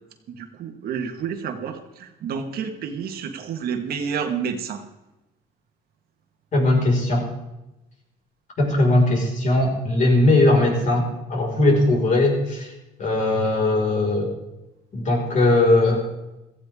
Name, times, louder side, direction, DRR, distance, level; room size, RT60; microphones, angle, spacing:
voice 1, 0.3-4.8, right 6 dB, 65° right, 6 dB, 1.7 m, -29 dB
voice 2, 6.5-7.3 8.6-12.7 13.0-14.3 14.9-16.0, left 2 dB, 45° left, 0 dB, 5.3 m, -19 dB
16.5 x 14.5 x 3.7 m, 0.99 s
cardioid pair, 110°, 17 cm